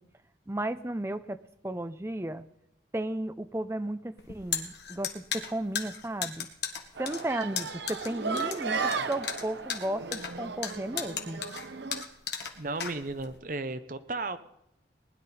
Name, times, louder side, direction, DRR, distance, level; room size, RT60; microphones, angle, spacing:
voice 1, 0.5-1.4 1.6-2.4 2.9-6.5 7.0-11.4, right 1 dB, 15° right, 11 dB, 0.6 m, -34 dB
sound 1, 4.2-13.4, left 7 dB, 70° left, 1.6 m, -36 dB
sound 2, 7.0-12.0, right 4 dB, 75° right, 0.9 m, -35 dB
voice 2, 12.6-14.4, right 3 dB, 45° right, 12 dB, 0.7 m, -34 dB
20.0 x 10.5 x 4.3 m, 0.81 s
head